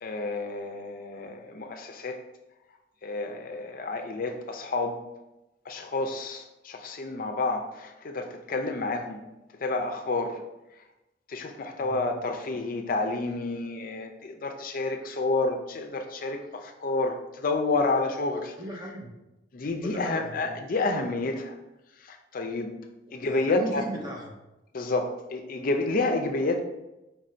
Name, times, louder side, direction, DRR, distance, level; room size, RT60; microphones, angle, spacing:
voice 1, 0.0-2.2 3.0-5.0 5.7-9.2 9.6-10.4 11.3-18.5 19.5-21.6 22.0-22.7 23.1-23.9 24.7-26.6, left 3 dB, 50° left, 6 dB, 0.5 m, -29 dB
voice 2, 11.8-12.2 18.6-19.1 19.8-20.6 23.2-24.3, right 1 dB, 20° right, -2 dB, 0.8 m, -37 dB
4.5 x 2.6 x 4.3 m, 0.97 s
head